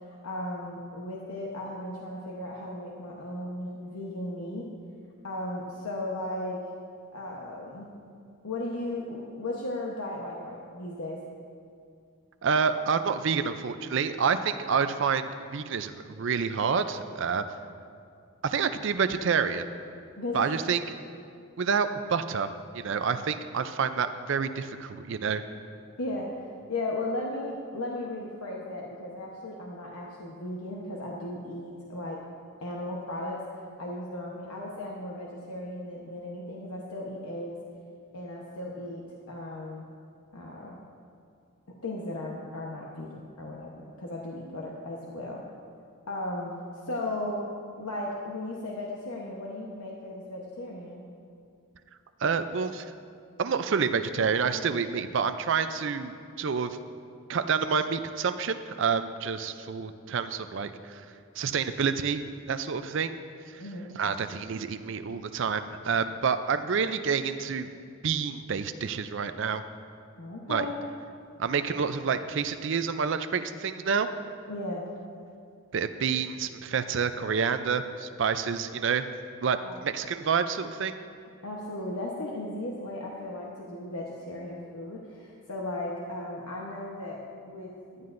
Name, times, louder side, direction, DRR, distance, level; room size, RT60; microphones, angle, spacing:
voice 1, 0.1-4.7 5.2-6.6 7.1-7.9 8.4-11.2 20.2-20.8 26.0-26.4 26.7-32.2 32.6-33.4 33.8-37.6 38.1-39.9 40.3-40.8 41.8-45.4 46.1-46.5 46.9-47.4 47.8-51.0 63.6-63.9 70.2-70.8 74.5-74.8 79.6-79.8 81.4-88.1, left 1 dB, 90° left, -3 dB, 1.0 m, -36 dB
voice 2, 12.4-17.4 18.4-19.7 20.3-20.8 21.6-25.4 52.2-52.9 53.4-56.8 57.3-61.0 61.4-62.2 62.5-63.1 63.5-63.6 64.0-67.7 68.0-69.6 70.5-70.6 71.4-74.1 75.7-79.1 79.4-81.0, right 6 dB, 55° right, 10 dB, 0.4 m, -28 dB
15.0 x 11.0 x 2.6 m, 2.3 s
head